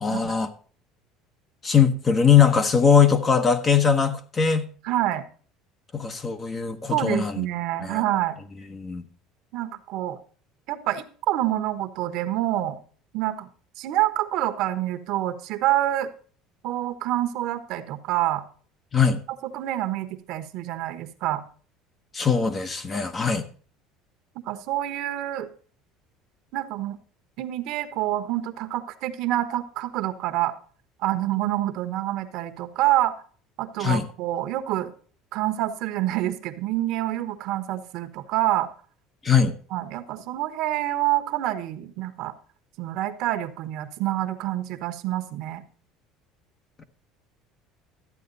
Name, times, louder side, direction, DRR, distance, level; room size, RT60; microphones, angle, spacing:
voice 1, 0.0-0.5 1.6-4.7 5.9-7.4 7.8-8.0 8.7-9.0 18.9-19.2 22.1-23.5 33.8-34.1 39.2-39.6 46.8-46.9, left 6 dB, 25° left, 9 dB, 1.0 m, -21 dB
voice 2, 4.8-5.2 6.9-8.4 9.5-10.2 10.7-12.8 13.1-13.5 13.8-16.1 16.6-18.4 19.4-21.4 24.5-25.5 26.5-27.0 27.4-30.6 31.0-33.1 33.6-34.9 35.3-38.7 39.7-42.3 42.8-45.6, right 14 dB, 65° right, 10 dB, 1.1 m, -27 dB
13.0 x 8.6 x 4.0 m, 0.42 s
cardioid pair, 135°, 0 cm